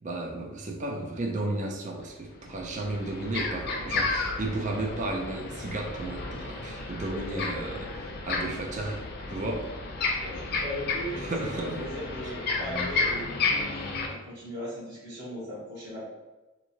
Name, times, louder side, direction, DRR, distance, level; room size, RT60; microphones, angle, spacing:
voice 1, 0.0-7.9 8.2-9.0 9.3-9.7 11.2-11.8, right 2 dB, 35° right, 1 dB, 0.4 m, -33 dB
sound 1, 2.0-2.1 2.5-14.1, left 3 dB, 50° left, 0.4 m, -32 dB
voice 2, 10.1-13.7 14.0-16.1, equal, 55° right, -9 dB, 1.1 m, -38 dB
2.9 x 2.6 x 2.8 m, 1.1 s
head